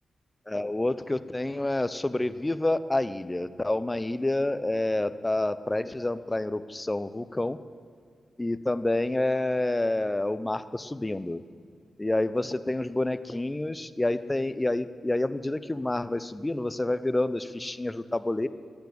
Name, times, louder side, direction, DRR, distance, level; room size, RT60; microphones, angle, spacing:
voice 1, 0.5-7.6 8.4-11.4 12.0-18.5, left 2 dB, 20° left, 14 dB, 0.7 m, -28 dB
11.5 x 9.4 x 9.5 m, 2.2 s
cardioid pair, 60°, 0 cm